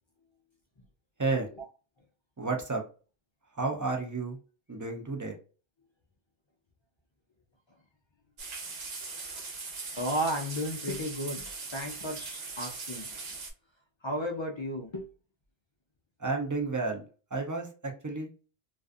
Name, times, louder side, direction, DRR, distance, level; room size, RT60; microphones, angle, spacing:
voice 1, 2.4-2.8 3.6-4.4 4.7-5.4 16.2-17.0 17.3-18.3, right 3 dB, 30° right, 2 dB, 0.4 m, -31 dB
sound 1, 8.4-13.5, right 4 dB, 80° right, 1.0 m, -40 dB
voice 2, 10.0-13.1 14.0-15.1, equal, 50° left, 2 dB, 0.3 m, -33 dB
2.4 x 2.4 x 2.4 m, 0.35 s
omnidirectional pair, 1.0 m